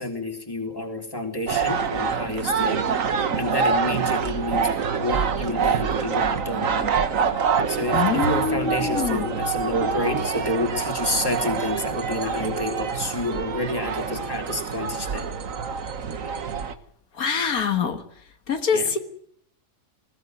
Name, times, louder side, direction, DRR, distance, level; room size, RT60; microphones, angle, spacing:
voice 1, 0.0-2.9 3.1-6.9 7.7-15.3 18.7-18.9, left 2 dB, 15° left, 3 dB, 3.4 m, -29 dB
sound 1, 1.5-16.7, right 6 dB, 65° right, 1.7 m, -26 dB
voice 2, 7.9-9.3 17.2-18.0 18.5-19.0, left 6 dB, 80° left, 7 dB, 1.9 m, -24 dB
21.0 x 16.5 x 9.5 m, 0.67 s
omnidirectional pair, 1.5 m